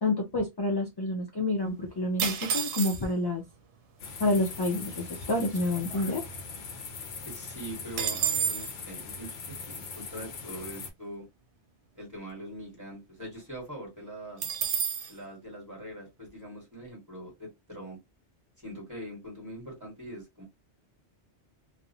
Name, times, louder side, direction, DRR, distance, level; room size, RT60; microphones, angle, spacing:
voice 1, 0.0-3.4 4.2-6.2, left 2 dB, 40° left, 0 dB, 0.3 m, -28 dB
sound 1, 2.2-3.3 4.1-4.2 4.4-4.7 5.1-6.6 7.0-7.1 7.3-8.7 14.4-15.1, right 7 dB, 90° right, 0.9 m, -31 dB
sound 2, 4.0-10.9, left 4 dB, 70° left, 0.9 m, -41 dB
voice 2, 7.2-11.2 11.9-14.4 15.1-18.0 18.6-20.4, equal, 15° right, -3 dB, 1.4 m, -42 dB
2.5 x 2.0 x 2.7 m, 0.21 s
omnidirectional pair, 1.2 m